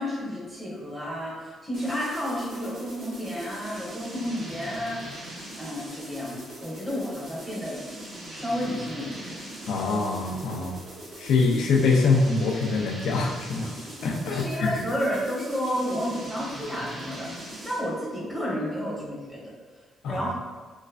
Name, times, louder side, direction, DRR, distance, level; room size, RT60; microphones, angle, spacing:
voice 1, 0.0-7.8 8.3-9.5 14.3-19.4 20.1-20.3, equal, 20° right, -7 dB, 1.4 m, -31 dB
sound 1, 1.7-18.0, right 1 dB, 75° right, 1.0 m, -41 dB
voice 2, 9.7-10.8 11.2-13.7 14.0-14.8 20.0-20.3, left 4 dB, 75° left, 1 dB, 0.4 m, -24 dB
3.2 x 3.1 x 2.5 m, 1.3 s
cardioid pair, 90°, 0 cm